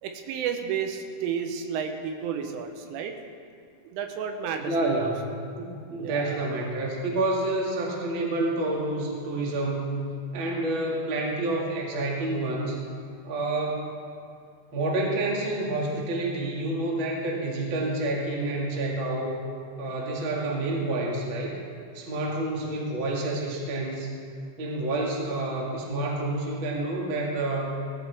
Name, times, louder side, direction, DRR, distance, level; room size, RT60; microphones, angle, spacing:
voice 1, 0.0-3.1 3.8-5.1 6.0-6.6 22.6-22.9, right 7 dB, 85° right, 5 dB, 3.5 m, -32 dB
voice 2, 4.5-5.2 5.5-10.0 10.3-12.8 13.2-14.0 14.7-19.4 19.8-21.6 21.9-24.1 24.6-27.8, right 2 dB, 50° right, -2 dB, 1.5 m, -28 dB
18.0 x 15.0 x 3.5 m, 2.2 s
omnidirectional pair, 5.6 m